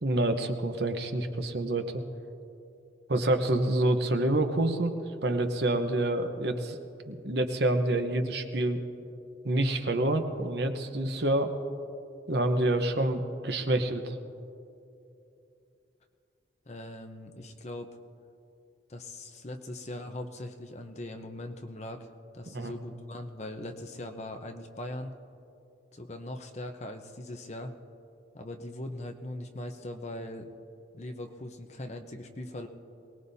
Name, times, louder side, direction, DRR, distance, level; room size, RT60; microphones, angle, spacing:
voice 1, 0.0-2.0 3.1-4.9 5.2-6.8 7.1-8.8 9.4-11.5 12.3-14.2 22.5-22.7, right 1 dB, 60° right, 6 dB, 1.0 m, -27 dB
voice 2, 16.7-17.9 18.9-22.1 22.3-25.1 25.9-27.7 28.3-30.6 30.9-32.7, left 1 dB, 35° left, 5 dB, 0.8 m, -40 dB
23.0 x 19.0 x 2.8 m, 2.7 s
head